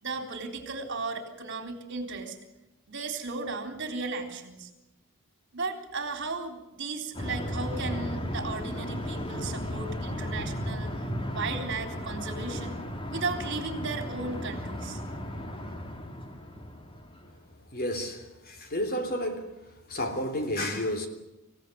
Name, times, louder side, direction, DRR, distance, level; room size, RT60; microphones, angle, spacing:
voice 1, 0.0-2.4 2.9-4.7 5.5-10.9 11.3-12.8 13.1-15.0, right 3 dB, 55° right, 3.8 m, -35 dB
sound 1, 7.1-17.4, equal, 25° left, 2.4 m, -35 dB
voice 2, 17.7-21.1, left 1 dB, 45° left, 3.4 m, -32 dB
26.0 x 16.5 x 9.4 m
head